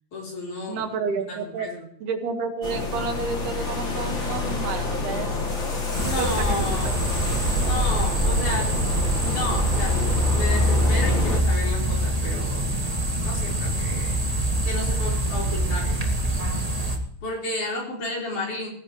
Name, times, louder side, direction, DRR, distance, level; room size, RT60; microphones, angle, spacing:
voice 1, 0.1-0.9 1.3-1.8 6.0-7.1 7.6-8.9 9.2-12.7 13.0-14.2 14.6-16.0 17.2-18.7, left 2 dB, 50° left, -2 dB, 6.1 m, -32 dB
voice 2, 0.7-1.7 2.0-5.3 6.1-6.9, right 5 dB, 75° right, 4 dB, 3.8 m, -30 dB
sound 1, 2.6-11.4, left 3 dB, 35° left, 3.0 m, -28 dB
sound 2, 5.9-17.0, right 1 dB, 30° right, 0.6 m, -24 dB
20.5 x 16.5 x 3.3 m, 0.66 s
omnidirectional pair, 4.6 m